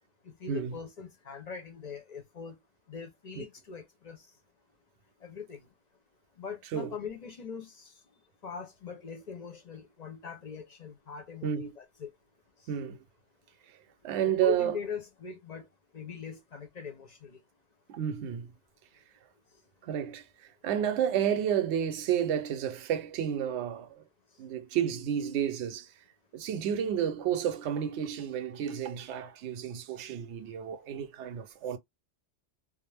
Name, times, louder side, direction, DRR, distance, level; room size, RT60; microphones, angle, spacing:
voice 1, 0.2-2.6 2.9-4.3 5.2-5.7 6.4-7.9 8.4-12.1 14.3-15.7 15.9-17.4, left 6 dB, 45° left, 0.7 m, -41 dB
voice 2, 12.7-13.0 14.0-14.8 17.9-18.5 19.8-24.0 24.4-25.9 26.3-31.8, right 9 dB, 75° right, 0.9 m, -31 dB
2.4 x 2.0 x 3.2 m
omnidirectional pair, 1.2 m